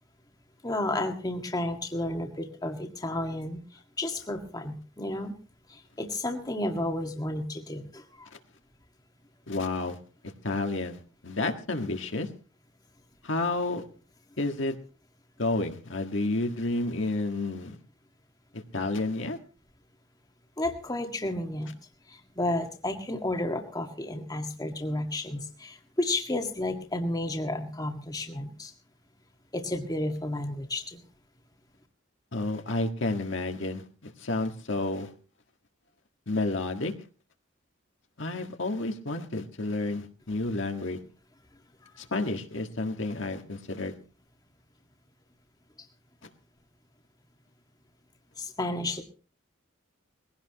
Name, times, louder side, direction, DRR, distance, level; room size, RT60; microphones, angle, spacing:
voice 1, 0.6-5.3 5.7-8.3 20.6-21.7 22.1-28.7 29.5-31.0 48.4-49.0, left 1 dB, 20° left, 3 dB, 1.8 m, -32 dB
voice 2, 9.5-10.0 10.2-12.3 13.2-13.8 14.4-14.7 15.4-17.8 18.5-19.4 32.3-35.1 36.3-36.9 38.2-41.0 42.0-43.9, left 2 dB, 70° left, 5 dB, 1.7 m, -30 dB
21.0 x 16.5 x 3.0 m, 0.37 s
head